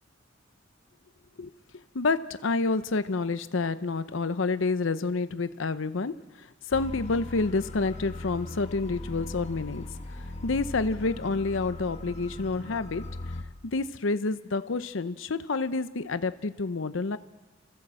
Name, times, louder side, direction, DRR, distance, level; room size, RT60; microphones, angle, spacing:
voice 1, 1.9-13.0 13.7-17.2, left 3 dB, 75° left, 12 dB, 0.7 m, -29 dB
sound 1, 6.7-13.4, left 2 dB, 35° left, 1.4 m, -39 dB
28.5 x 15.0 x 7.6 m, 1.3 s
head